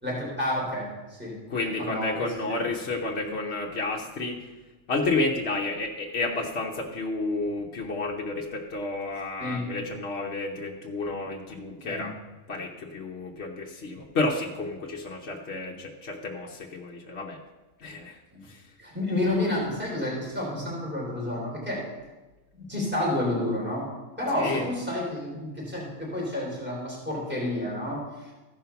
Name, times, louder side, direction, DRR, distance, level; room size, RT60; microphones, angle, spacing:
voice 1, 0.0-1.4 1.8-2.5 3.2-3.3 9.4-9.6 11.8-12.1 18.3-18.4 18.8-21.8 22.5-23.9 24.2-28.3, left 1 dB, 5° right, -4 dB, 3.6 m, -30 dB
voice 2, 1.5-4.5 4.9-12.1 12.5-17.4 17.8-18.7 24.3-24.7, left 2 dB, 55° left, -1 dB, 1.1 m, -31 dB
14.5 x 5.5 x 5.8 m, 1.2 s
omnidirectional pair, 1.4 m